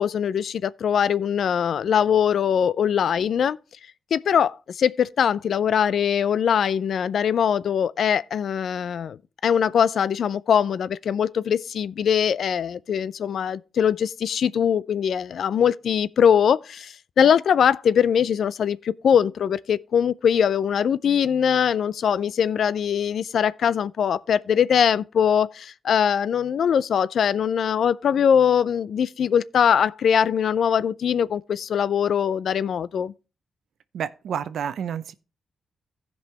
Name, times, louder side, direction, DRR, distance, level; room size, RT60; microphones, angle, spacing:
voice 1, 0.0-3.6 4.1-33.1, left 8 dB, 70° left, 0.4 m, -22 dB
voice 2, 33.9-35.1, right 8 dB, 80° right, 0.6 m, -29 dB
15.5 x 5.3 x 3.2 m
cardioid pair, 55°, 0 cm